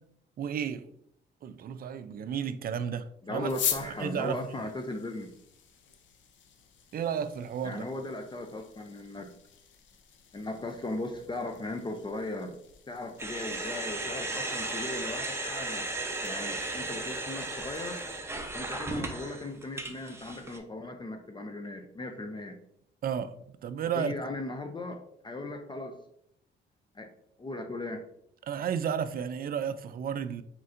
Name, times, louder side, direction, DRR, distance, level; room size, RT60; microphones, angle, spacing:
voice 1, 0.4-0.9 1.4-3.5 3.8-4.4 6.9-7.8 23.0-23.4 23.6-24.1 28.5-30.4, right 8 dB, 50° right, 0.4 m, -32 dB
voice 2, 3.2-5.3 7.6-9.3 10.3-12.6 12.9-15.9 16.2-18.0 18.5-22.6 24.0-25.0 25.2-26.0 26.9-27.1 27.4-28.0, left 2 dB, 25° left, 0.5 m, -37 dB
sound 1, 3.4-18.2, left 9 dB, 70° left, 0.6 m, -43 dB
sound 2, 13.2-20.6, right 2 dB, 15° right, 0.7 m, -35 dB
4.4 x 4.0 x 2.5 m
cardioid pair, 90°, 20 cm